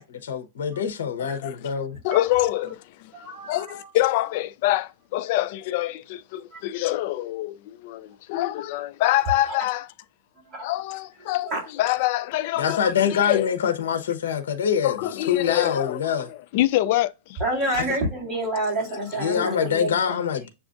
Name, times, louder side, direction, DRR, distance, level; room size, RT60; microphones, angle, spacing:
voice 1, 0.0-2.0 12.6-15.0 15.2-16.3 17.8-17.9 19.2-20.5, left 8 dB, 90° left, 0.8 m, -25 dB
voice 2, 1.2-1.5 2.0-3.1 3.5-9.9 10.6-13.5 14.8-17.4 19.4-19.6, left 15 dB, 45° left, 0.3 m, -26 dB
voice 3, 3.1-3.9 6.5-6.6 10.5-10.7 11.5-11.7 17.4-20.2, right 1 dB, 25° right, 2.4 m, -28 dB
6.9 x 2.4 x 2.5 m
supercardioid pair, 165°, 0 cm